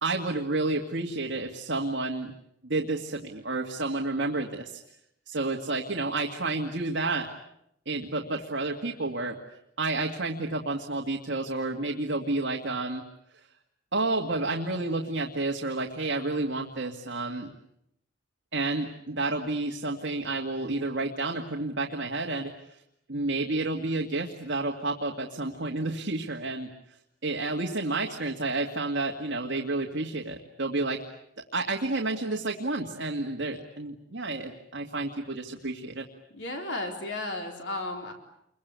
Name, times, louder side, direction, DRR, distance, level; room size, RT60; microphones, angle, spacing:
voice 1, 0.0-2.3 2.6-4.8 5.3-7.3 7.9-9.4 9.8-13.0 13.9-17.5 18.5-22.8 23.1-26.7 27.2-31.0 31.4-36.1, right 2 dB, 60° right, 1 dB, 2.2 m, -30 dB
voice 2, 36.3-38.1, left 2 dB, 60° left, 3 dB, 4.1 m, -34 dB
29.0 x 23.5 x 8.3 m, 0.77 s
head